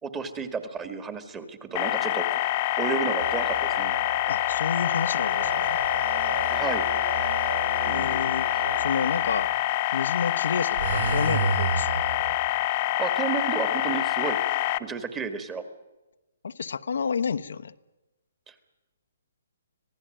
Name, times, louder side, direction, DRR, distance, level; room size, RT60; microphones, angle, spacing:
voice 1, 0.0-2.4 2.8-3.9 6.5-6.9 7.9-8.1 8.5-8.6 13.0-14.4 14.8-15.6 18.5-18.6, right 6 dB, 10° right, 10 dB, 1.7 m, -32 dB
sound 1, 1.8-14.8, left 16 dB, 25° left, 0.8 m, -26 dB
sound 2, 3.2-9.7 10.7-12.4, right 5 dB, 60° right, 7.5 m, -33 dB
voice 2, 4.3-5.8 7.9-8.5 8.8-9.5 9.9-12.0 16.4-17.7, left 6 dB, 75° left, 9 dB, 1.1 m, -30 dB
26.0 x 17.0 x 9.1 m, 1.1 s
hypercardioid pair, 165°, 0 cm